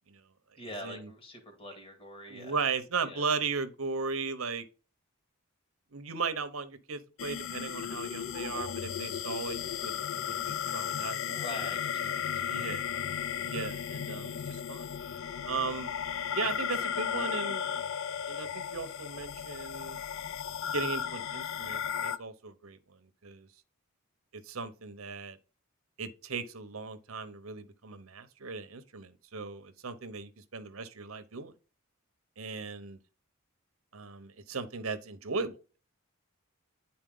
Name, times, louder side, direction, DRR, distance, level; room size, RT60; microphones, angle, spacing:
voice 1, 0.6-2.6 3.0-3.2 11.3-12.7, left 1 dB, 25° left, 2.2 m, -44 dB
voice 2, 2.3-4.6 5.9-11.4 12.5-12.8 13.5-14.9 15.5-15.9 16.3-17.7 18.3-20.0 20.7-22.8 23.2-23.5 24.3-25.4 26.0-31.5 32.4-33.0 33.9-35.6, right 4 dB, 75° right, 0.9 m, -37 dB
sound 1, 7.2-22.2, left 8 dB, 60° left, 0.4 m, -35 dB
9.6 x 4.3 x 3.8 m
head